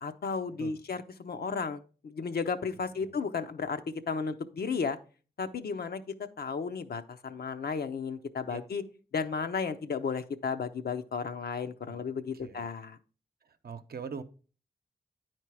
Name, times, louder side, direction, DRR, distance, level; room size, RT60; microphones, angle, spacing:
voice 1, 0.0-3.8 4.1-5.0 5.4-6.0 6.4-8.8 9.1-13.0, left 5 dB, 75° left, 0.7 m, -34 dB
voice 2, 2.7-3.2 8.5-8.6 11.8-12.1 12.3-12.7 13.4-14.2, right 6 dB, 70° right, 0.7 m, -43 dB
9.4 x 4.5 x 4.7 m
cardioid pair, 50°, 16 cm